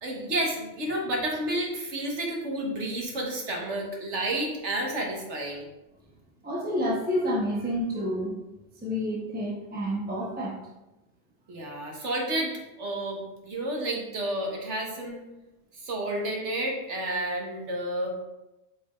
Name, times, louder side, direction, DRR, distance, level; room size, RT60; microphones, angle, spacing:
voice 1, 0.0-5.6 11.5-15.2 15.8-18.1, right 1 dB, 90° right, 0 dB, 1.6 m, -31 dB
voice 2, 6.4-8.3 8.8-10.6, equal, 10° right, -4 dB, 1.0 m, -29 dB
8.4 x 5.3 x 2.5 m, 0.98 s
omnidirectional pair, 1.2 m